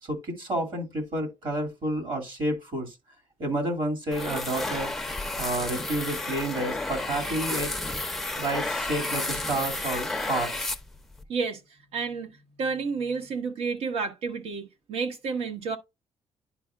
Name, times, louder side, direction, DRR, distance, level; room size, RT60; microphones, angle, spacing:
voice 1, 0.0-2.9 3.4-5.0 5.4-7.7 8.4-10.7, right 1 dB, 50° right, 2.3 m, -30 dB
sound 1, 4.1-11.2, left 2 dB, 5° left, 0.4 m, -32 dB
voice 2, 11.3-11.6 11.9-15.8, right 5 dB, 75° right, 1.2 m, -30 dB
10.5 x 4.9 x 2.3 m
cardioid pair, 160°, 10 cm